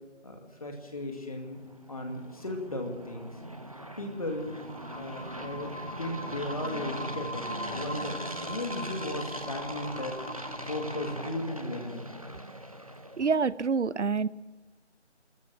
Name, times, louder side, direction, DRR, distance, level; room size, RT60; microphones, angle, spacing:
voice 1, 0.2-1.6 1.9-3.4 4.0-4.6 4.9-10.2 10.6-12.1, left 1 dB, 30° left, 3 dB, 2.2 m, -36 dB
sound 1, 1.2-13.5, right 1 dB, 30° right, 0.9 m, -40 dB
sound 2, 2.7-11.2, equal, 45° left, 2.8 m, -42 dB
voice 2, 13.2-14.3, right 5 dB, 75° right, 19 dB, 0.7 m, -26 dB
24.5 x 14.0 x 7.4 m, 1.2 s
figure-of-eight pair, 180°, 36 cm